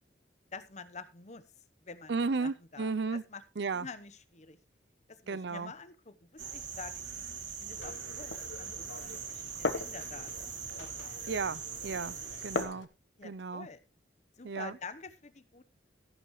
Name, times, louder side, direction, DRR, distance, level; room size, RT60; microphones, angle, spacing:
voice 1, 0.5-1.4 1.8-2.1 2.4-3.4 3.7-4.6 5.1-7.3 7.6-10.5 10.8-11.1 13.2-13.8 14.4-15.6, left 4 dB, 40° left, 1.0 m, -48 dB
voice 2, 2.1-3.2 3.6-3.9 5.3-5.7 11.3-12.2 12.4-12.9 13.2-13.7 14.4-14.8, right 4 dB, 65° right, 0.6 m, -34 dB
sound 1, 6.4-12.6, right 6 dB, 80° right, 2.7 m, -41 dB
Glass, 7.7-12.8, left 3 dB, 80° left, 1.1 m, -40 dB
14.0 x 11.0 x 3.1 m
head